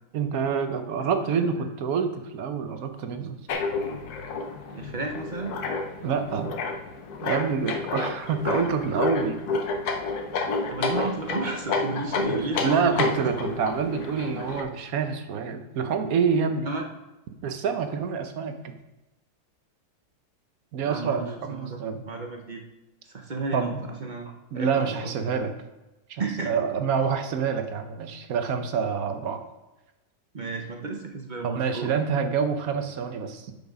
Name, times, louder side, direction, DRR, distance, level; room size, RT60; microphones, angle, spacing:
voice 1, 0.1-3.4 6.0-6.5 7.2-9.4 12.3-16.7 17.4-18.5 20.7-22.0 23.5-23.8 24.5-25.5 26.1-29.4 31.4-33.5, right 6 dB, 65° right, 7 dB, 1.2 m, -27 dB
sound 1, 3.5-14.6, left 4 dB, 70° left, 1.3 m, -30 dB
voice 2, 4.7-5.6 10.7-13.0 16.7-16.8 20.8-22.6 23.1-23.7 24.0-25.1 26.2-26.5 30.3-32.0, right 3 dB, 45° right, 2 dB, 0.6 m, -33 dB
6.9 x 6.1 x 5.0 m, 1.0 s
omnidirectional pair, 1.8 m